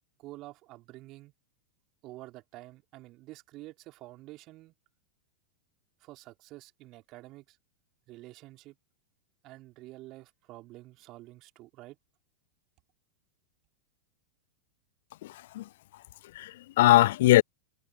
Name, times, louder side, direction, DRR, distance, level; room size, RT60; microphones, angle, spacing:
voice 1, 0.2-1.3 2.0-4.7 6.0-7.6 8.1-8.8 9.4-12.0, right 18 dB, 40° right, 4.2 m, -48 dB
voice 2, 15.2-15.6 16.4-17.4, left 16 dB, 55° left, 0.3 m, -21 dB
figure-of-eight pair, 90°, 0 cm